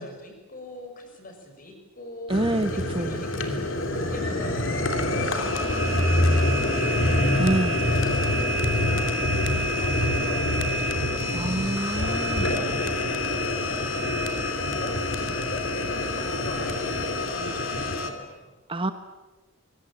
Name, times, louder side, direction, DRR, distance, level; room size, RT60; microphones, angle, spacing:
voice 1, 0.0-2.3 2.7-10.9 11.8-14.4 14.8-18.5 18.8-18.9, left 1 dB, 40° left, 4 dB, 6.4 m, -41 dB
sound 1, 2.3-18.1, left 1 dB, 65° left, 3.1 m, -25 dB
voice 2, 2.3-3.2 7.4-7.8 11.3-12.5 18.7-18.9, right 1 dB, 25° right, 9 dB, 1.0 m, -27 dB
25.5 x 22.5 x 8.7 m, 1.1 s
head